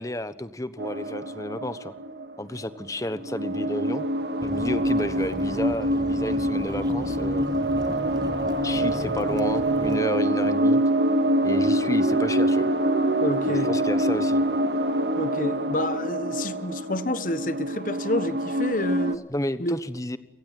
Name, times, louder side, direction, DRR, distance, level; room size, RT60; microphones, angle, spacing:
voice 1, 0.0-1.9 2.4-4.0 4.4-7.5 8.6-10.8 11.4-12.7 13.4-14.4 19.3-20.2, left 1 dB, 20° left, 1.1 m, -31 dB
sound 1, 0.8-2.7 3.1-19.2, right 1 dB, 70° right, 2.0 m, -25 dB
sound 2, 4.4-10.0, equal, 20° right, 1.4 m, -37 dB
voice 2, 13.2-13.7 15.2-19.2 19.6-19.8, left 1 dB, 45° left, 1.3 m, -29 dB
29.5 x 17.5 x 9.2 m
head